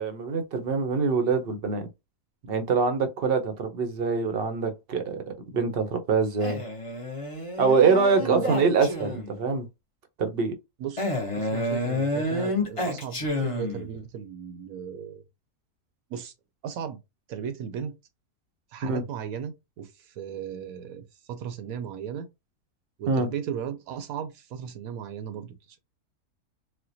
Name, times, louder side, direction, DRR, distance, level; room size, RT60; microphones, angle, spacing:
voice 1, 0.0-1.9 2.4-5.2 5.5-6.6 7.6-9.7 10.2-10.6 18.8-19.0 23.1-23.3, right 5 dB, 55° right, 0.7 m, -24 dB
Male speech man speaking, 6.4-9.4 11.0-13.9, left 1 dB, 25° left, 0.8 m, -29 dB
voice 2, 8.2-8.6 10.8-11.1 11.4-15.2 16.1-16.3 16.6-17.0 17.3-18.0 18.7-22.3 23.0-25.8, right 8 dB, 70° right, 1.0 m, -36 dB
4.3 x 2.1 x 2.6 m
omnidirectional pair, 1.6 m